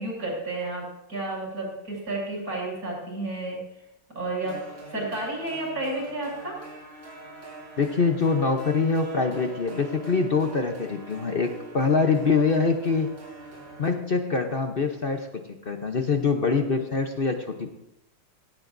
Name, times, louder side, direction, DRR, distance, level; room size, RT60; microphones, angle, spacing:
voice 1, 0.0-3.6 4.1-4.6 4.9-6.6, right 2 dB, 45° right, -3 dB, 7.3 m, -31 dB
sound 1, 4.4-13.9, right 2 dB, 70° right, 5.6 m, -43 dB
voice 2, 7.8-13.1 13.8-17.7, left 4 dB, 60° left, 4 dB, 0.5 m, -24 dB
17.5 x 17.5 x 2.6 m, 0.84 s
omnidirectional pair, 2.3 m